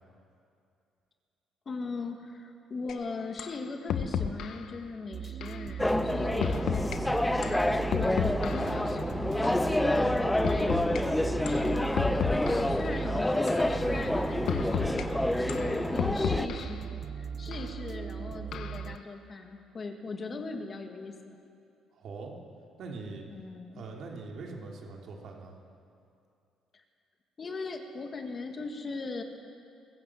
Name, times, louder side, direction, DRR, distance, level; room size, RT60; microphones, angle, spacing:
voice 1, 1.7-7.2 7.9-12.0 12.5-16.9 17.1-21.4 23.3-23.9 26.7-26.8 27.4-29.2, left 3 dB, 35° left, 5 dB, 1.8 m, -39 dB
sound 1, 2.9-3.0 3.4-3.6 3.9-4.6 5.4-5.6 6.4-7.0 7.4-8.8 9.4-9.6 10.4-11.0 11.5-11.7 12.0-12.8 13.5-13.7 14.5-15.0 15.5-16.8 17.5-17.7 18.5-18.9, left 7 dB, 65° left, 1.1 m, -33 dB
sound 2, 5.1-19.0, right 8 dB, 45° right, 0.7 m, -38 dB
sound 3, 5.8-16.5, left 1 dB, 10° left, 0.7 m, -28 dB
voice 2, 21.9-22.3 22.8-23.3 23.7-25.6, right 3 dB, 60° right, 0 dB, 3.3 m, -42 dB
22.0 x 15.0 x 7.7 m, 2.5 s
cardioid pair, 115°, 0 cm